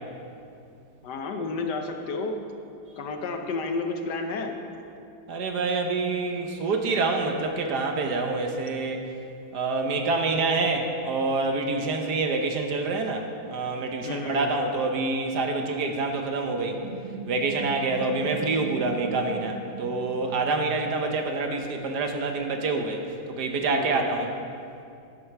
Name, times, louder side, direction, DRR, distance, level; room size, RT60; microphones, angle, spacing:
voice 1, 1.0-2.4 3.0-4.5 14.0-14.5 23.7-24.1, left 3 dB, 65° left, 5 dB, 1.4 m, -31 dB
voice 2, 5.3-9.1 9.5-16.8 17.3-23.0 23.3-24.3, right 3 dB, 65° right, 4 dB, 1.4 m, -27 dB
sound 1, 16.8-21.0, right 3 dB, 35° right, 0.8 m, -38 dB
12.0 x 10.0 x 4.6 m, 2.5 s
omnidirectional pair, 2.0 m